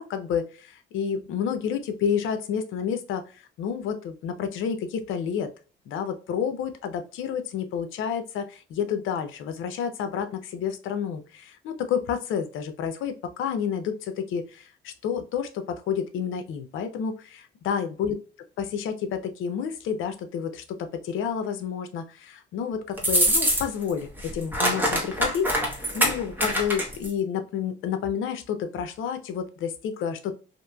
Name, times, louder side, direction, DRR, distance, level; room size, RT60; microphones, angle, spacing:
voice 1, 0.0-5.5 5.9-18.2 18.6-30.3, left 7 dB, 85° left, 8 dB, 0.6 m, -30 dB
sound 1, 23.0-23.9 24.2-27.1, equal, 10° right, 1.1 m, -24 dB
2.9 x 2.5 x 2.2 m, 0.36 s
cardioid pair, 90°, 20 cm